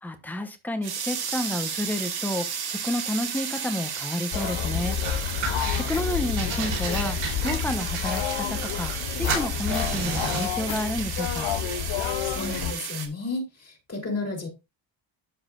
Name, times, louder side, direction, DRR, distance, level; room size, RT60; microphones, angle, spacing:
voice 1, 0.0-5.0 5.9-7.2 7.4-11.5, left 1 dB, 5° left, 1.0 m, -30 dB
sound 1, 0.8-13.1, right 7 dB, 50° right, 1.5 m, -34 dB
sound 2, 4.3-12.7, left 10 dB, 65° left, 0.7 m, -29 dB
sound 3, 5.0-6.0 6.4-9.0 9.3-10.6, right 4 dB, 90° right, 5.1 m, -33 dB
voice 2, 12.2-14.5, left 3 dB, 30° left, 2.9 m, -32 dB
12.0 x 4.8 x 2.5 m
cardioid pair, 135°, 49 cm